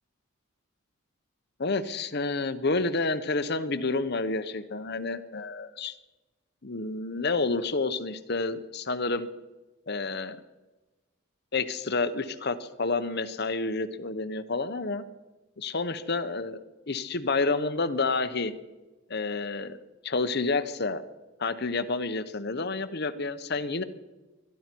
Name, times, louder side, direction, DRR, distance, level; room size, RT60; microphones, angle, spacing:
voice 1, 1.6-5.9 6.6-9.3 9.9-10.4 11.5-15.0 15.6-18.5 19.1-19.8 20.0-21.0 21.4-23.8, left 3 dB, 50° left, 10 dB, 1.0 m, -29 dB
22.0 x 11.5 x 4.6 m, 1.1 s
head